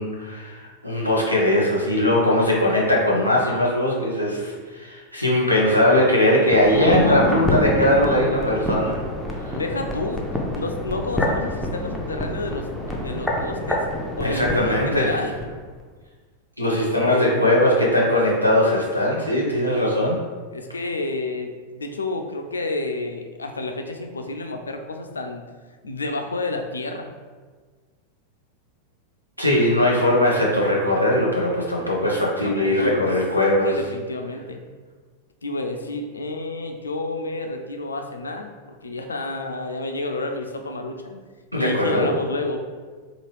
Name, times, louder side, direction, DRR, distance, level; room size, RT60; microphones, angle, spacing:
voice 1, 0.0-9.0 9.4-9.6 14.2-15.1 16.6-20.2 29.4-33.7 41.5-42.1, left 1 dB, 90° right, -4 dB, 0.7 m, -20 dB
sound 1, 6.5-15.5 15.8-15.9, left 1 dB, ahead, 0.5 m, -27 dB
voice 2, 9.5-10.3 10.5-12.7 13.0-13.9 14.2-15.4 16.7-17.6 18.3-18.6 20.5-25.4 25.8-27.2 32.4-33.1 33.6-34.6 35.4-41.2 41.5-42.6, left 2 dB, 75° left, 5 dB, 0.3 m, -30 dB
3.0 x 2.4 x 3.2 m, 1.4 s
figure-of-eight pair, 90°, 0 cm